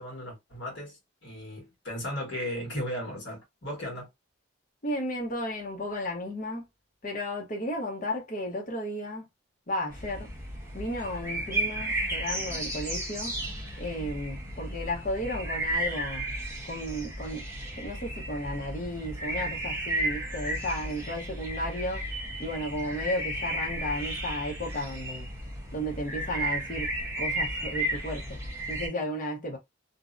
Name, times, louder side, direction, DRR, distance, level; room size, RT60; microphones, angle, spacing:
voice 1, 0.0-4.1, equal, 60° left, 1.3 m, -36 dB
voice 2, 4.8-6.6 7.0-9.2 9.7-10.3 10.7-13.3 13.8-16.2 16.6-17.4 17.8-22.0 22.4-25.3 25.7-26.9 27.2-28.4 28.7-29.6, equal, 40° left, 0.6 m, -33 dB
sound 1, 9.9-28.9, right 1 dB, 15° right, 0.8 m, -34 dB
2.6 x 2.0 x 2.4 m
head